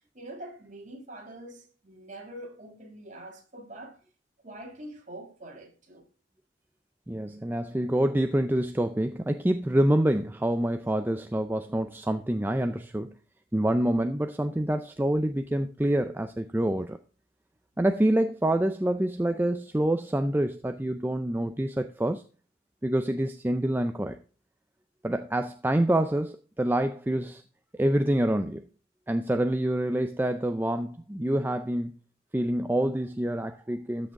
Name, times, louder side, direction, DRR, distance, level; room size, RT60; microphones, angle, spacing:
voice 1, 0.0-4.0 4.4-6.1, right 1 dB, 40° right, 2.4 m, -44 dB
voice 2, 7.1-13.1 13.5-17.0 17.8-22.2 22.8-24.2 25.0-27.4 27.7-28.6 29.1-31.9 32.3-34.1, right 1 dB, 10° right, 0.4 m, -26 dB
13.0 x 6.3 x 3.6 m
head